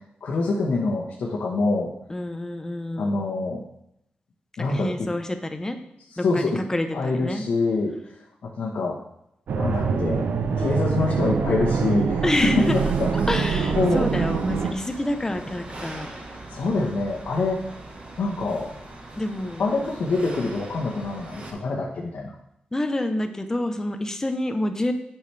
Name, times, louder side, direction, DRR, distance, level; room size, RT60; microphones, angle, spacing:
voice 1, 0.2-1.9 3.0-3.6 4.6-4.9 6.2-6.6 6.9-7.9 8.6-9.0 9.5-10.3 10.5-12.2 12.7-13.4 13.7-14.1 16.5-17.7 18.2-18.7 19.6-22.3, left 3 dB, 70° left, -4 dB, 1.2 m, -25 dB
voice 2, 2.1-3.2 4.7-5.8 6.2-7.5 12.2-12.8 13.3-16.1 19.2-19.6 22.7-24.9, left 1 dB, 15° left, 7 dB, 0.8 m, -27 dB
sound 1, 9.5-14.7, right 5 dB, 80° right, 0.6 m, -24 dB
sound 2, 12.3-21.5, right 2 dB, 35° right, 1.5 m, -41 dB
8.8 x 5.8 x 3.4 m, 0.78 s
wide cardioid pair, 105°, 3 cm